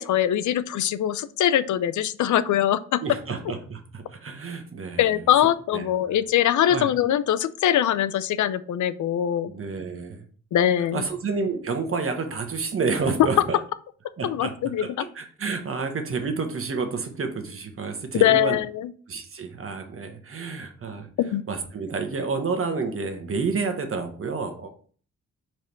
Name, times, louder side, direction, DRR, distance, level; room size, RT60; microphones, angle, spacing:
voice 1, 0.0-3.0 5.0-9.5 10.5-11.0 14.2-15.0 18.1-18.9 21.2-21.4, left 11 dB, 75° left, 15 dB, 0.6 m, -22 dB
voice 2, 3.0-5.1 5.7-5.8 6.7-6.9 9.5-10.2 10.9-13.6 14.2-14.5 14.8-18.6 19.1-21.1 21.5-24.7, right 4 dB, 45° right, 6 dB, 1.4 m, -29 dB
5.1 x 4.6 x 4.6 m, 0.44 s
cardioid pair, 85°, 30 cm